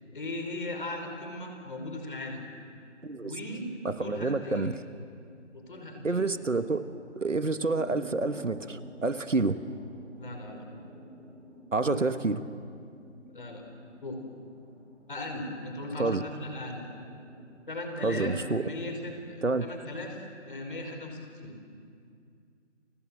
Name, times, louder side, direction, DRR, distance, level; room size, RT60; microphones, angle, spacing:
voice 1, 0.1-2.5 3.2-3.7 4.0-4.7 5.5-6.2 10.2-10.6 11.8-12.0 13.3-13.6 14.0-14.2 15.1-16.9 17.7-21.6, left 2 dB, 45° left, 3 dB, 5.4 m, -38 dB
voice 2, 3.8-4.7 6.0-6.8 7.1-9.6 11.7-12.4 16.0-16.2 18.0-18.7 19.4-19.7, right 3 dB, 75° right, 11 dB, 1.6 m, -28 dB
sound 1, 5.5-17.6, right 1 dB, 5° right, 1.5 m, -50 dB
30.0 x 25.0 x 7.8 m, 2.3 s
figure-of-eight pair, 165°, 38 cm